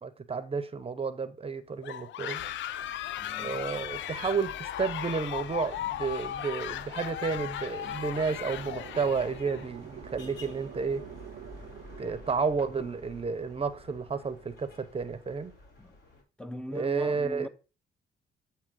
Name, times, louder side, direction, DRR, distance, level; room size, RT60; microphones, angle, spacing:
voice 1, 0.0-2.4 3.4-11.0 12.0-15.5 16.7-17.5, right 5 dB, 30° right, 0.8 m, -31 dB
sound 1, 1.8-9.7, left 12 dB, 70° left, 0.4 m, -37 dB
sound 2, 2.3-16.2, left 2 dB, 55° left, 3.3 m, -50 dB
voice 2, 3.2-3.6 15.8-16.0 16.4-17.5, equal, 5° left, 0.7 m, -40 dB
sound 3, 7.5-14.6, right 10 dB, 60° right, 0.6 m, -48 dB
8.7 x 3.0 x 6.2 m
cardioid pair, 90°, 20 cm